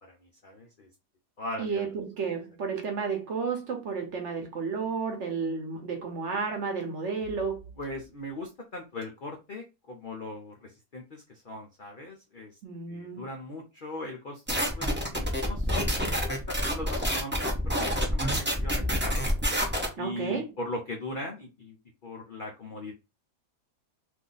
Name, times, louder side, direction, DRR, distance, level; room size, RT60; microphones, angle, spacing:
voice 1, 0.0-0.9 1.4-1.9 7.8-12.6 12.9-14.4 14.7-15.9 16.2-19.3 19.9-21.8 22.0-22.9, left 1 dB, 65° left, 0.5 m, -39 dB
voice 2, 1.6-7.7 12.6-13.2 20.0-20.5, right 5 dB, 55° right, 1.0 m, -32 dB
sound 1, 14.5-19.9, equal, 15° right, 0.3 m, -28 dB
2.6 x 2.5 x 3.8 m
omnidirectional pair, 1.7 m